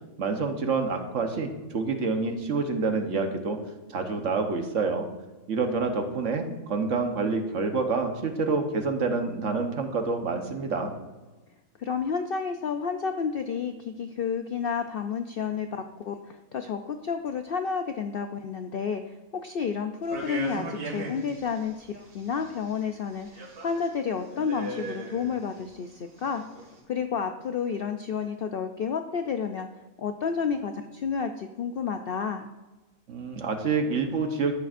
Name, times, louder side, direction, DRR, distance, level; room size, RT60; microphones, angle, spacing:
voice 1, 0.2-3.6 3.9-5.1 5.5-10.9 33.1-34.5, right 4 dB, 60° right, 4 dB, 1.3 m, -27 dB
voice 2, 11.8-26.4 26.9-29.7 30.0-32.5, left 6 dB, 85° left, 7 dB, 0.5 m, -31 dB
sound 1, 20.0-21.6 22.1-22.8 23.2-23.9 24.2-25.6 26.3-26.7, right 2 dB, 90° right, 2.5 m, -37 dB
13.0 x 9.0 x 2.5 m, 1.2 s
omnidirectional pair, 1.6 m